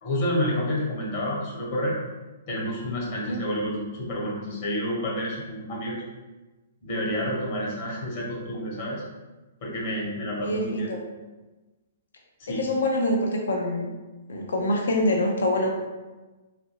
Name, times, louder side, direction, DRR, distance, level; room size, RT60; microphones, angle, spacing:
voice 1, 0.0-2.0 2.5-6.0 6.8-9.0 9.6-10.9 12.4-12.6, equal, 45° left, -4 dB, 1.0 m, -29 dB
voice 2, 10.4-11.0 12.5-13.9 14.3-15.7, left 1 dB, 85° left, 1 dB, 0.6 m, -25 dB
3.1 x 2.5 x 2.9 m, 1.2 s
hypercardioid pair, 155°, 0 cm